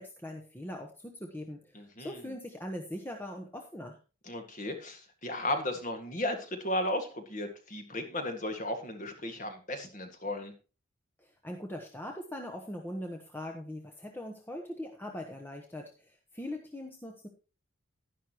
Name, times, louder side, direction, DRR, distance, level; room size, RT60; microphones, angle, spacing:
voice 1, 0.0-4.0 11.2-17.3, left 1 dB, 10° left, 2 dB, 1.0 m, -41 dB
voice 2, 1.7-2.2 4.2-10.5, left 1 dB, 35° left, 5 dB, 1.9 m, -35 dB
11.0 x 11.0 x 3.0 m, 0.33 s
head